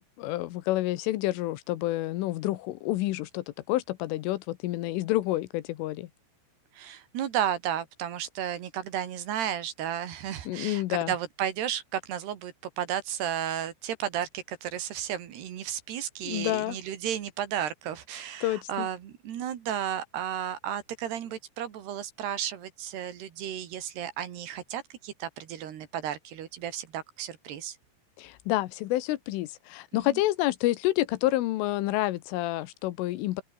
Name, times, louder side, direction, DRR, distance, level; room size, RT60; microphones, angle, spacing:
voice 1, 0.0-6.1 10.5-11.1 16.2-16.8 18.4-18.9 28.2-33.4, left 16 dB, 80° left, 3.6 m, -29 dB
voice 2, 6.7-27.8 29.9-30.2, right 10 dB, 60° right, 3.8 m, -33 dB
open air
omnidirectional pair, 5.8 m